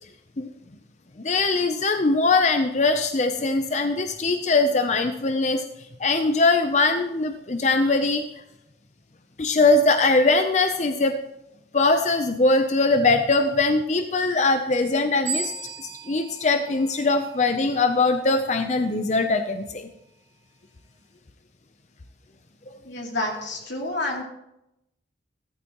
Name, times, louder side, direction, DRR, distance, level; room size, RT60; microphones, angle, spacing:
voice 1, 1.2-5.6 6.0-8.2 9.4-11.2 11.7-15.5 15.8-19.9, left 3 dB, 40° left, 7 dB, 0.6 m, -21 dB
sound 1, 15.3-17.7, right 4 dB, 15° right, 4.8 m, -35 dB
voice 2, 22.8-24.2, left 2 dB, 85° left, 0 dB, 3.0 m, -29 dB
14.5 x 14.0 x 3.0 m, 0.84 s
head